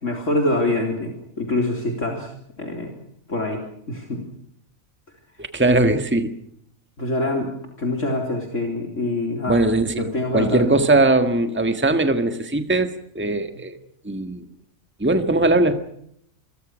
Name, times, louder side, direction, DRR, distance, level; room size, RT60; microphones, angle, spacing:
voice 1, 0.0-2.9 3.3-4.2 7.0-9.6 10.0-10.7 13.5-13.6, left 2 dB, 65° left, 2 dB, 4.1 m, -25 dB
voice 2, 5.4-6.4 9.5-10.1 10.3-13.8 14.1-14.5 15.0-15.8, right 2 dB, 10° right, 8 dB, 1.7 m, -20 dB
28.5 x 23.0 x 6.4 m, 0.70 s
omnidirectional pair, 1.4 m